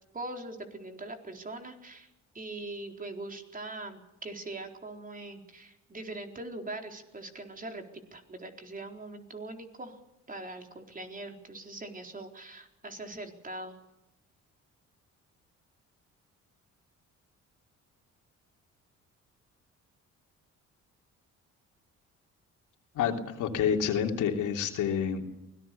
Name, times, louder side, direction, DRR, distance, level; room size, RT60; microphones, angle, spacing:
voice 1, 0.1-2.1 2.3-7.8 8.1-10.0 10.3-13.8, right 2 dB, 30° right, 4 dB, 4.1 m, -42 dB
voice 2, 22.9-25.4, left 8 dB, 85° left, 2 dB, 3.3 m, -28 dB
24.0 x 18.5 x 7.0 m, 0.91 s
cardioid pair, 90°, 30 cm